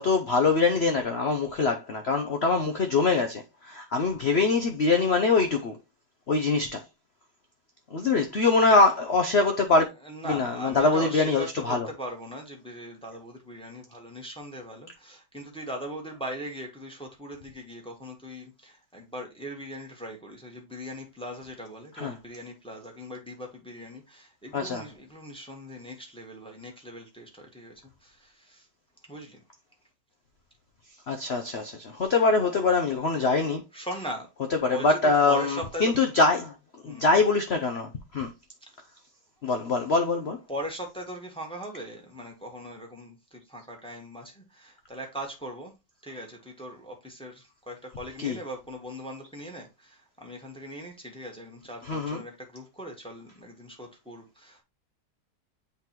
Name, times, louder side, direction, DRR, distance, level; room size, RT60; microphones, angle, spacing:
voice 1, 0.0-5.8 6.3-6.8 7.9-9.9 10.2-11.9 22.0-22.1 24.5-24.8 31.1-33.6 34.6-36.5 36.8-38.3 39.4-40.4 48.2-48.4 51.9-52.2, left 3 dB, 75° left, 0.6 m, -23 dB
voice 2, 9.8-27.7 28.0-28.7 29.1-29.4 33.2-33.3 33.7-34.3 34.7-35.9 36.8-37.2 40.5-45.7 46.0-54.6, equal, 5° left, 1.5 m, -40 dB
8.5 x 3.8 x 2.9 m
omnidirectional pair, 2.2 m